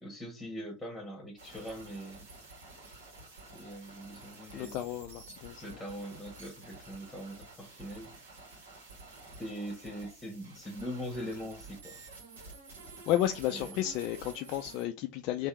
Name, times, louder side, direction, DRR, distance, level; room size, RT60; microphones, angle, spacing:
voice 1, 0.0-2.2 3.5-4.8 5.6-8.1 9.4-12.0 13.5-13.8, equal, 5° left, 1.3 m, -42 dB
sound 1, 1.4-14.8, right 3 dB, 70° right, 1.6 m, -51 dB
voice 2, 4.5-5.6 13.1-15.5, left 12 dB, 45° left, 0.4 m, -32 dB
3.5 x 2.7 x 4.5 m
figure-of-eight pair, 85°, 0 cm